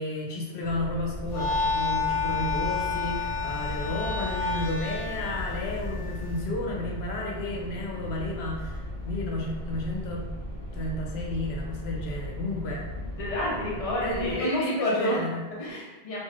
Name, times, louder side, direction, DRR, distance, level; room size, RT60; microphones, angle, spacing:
voice 1, 0.0-10.3 10.7-12.9 13.7-15.5, left 2 dB, 85° left, -2 dB, 0.9 m, -32 dB
sound 1, 0.6-14.3, equal, 45° right, 0.5 m, -37 dB
sound 2, 1.3-6.5, left 5 dB, 55° left, 1.2 m, -30 dB
voice 2, 13.2-15.2 15.6-16.2, equal, 40° left, -5 dB, 0.8 m, -29 dB
3.0 x 2.5 x 2.4 m, 1.2 s
omnidirectional pair, 1.1 m